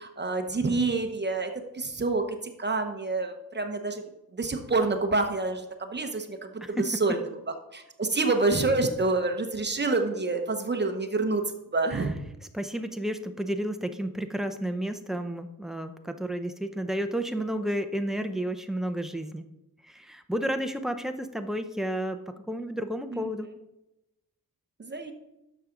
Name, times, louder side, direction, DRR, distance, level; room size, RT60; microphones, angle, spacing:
voice 1, 0.0-2.2 2.6-4.0 4.3-7.2 7.7-11.4 11.7-12.1 23.1-23.3 24.8-25.1, right 3 dB, 30° right, 5 dB, 0.9 m, -27 dB
voice 2, 6.6-7.2 11.9-12.1 12.5-19.5 19.8-23.5, right 1 dB, ahead, 7 dB, 0.6 m, -32 dB
10.5 x 7.0 x 3.8 m, 0.92 s
wide cardioid pair, 140°, 35 cm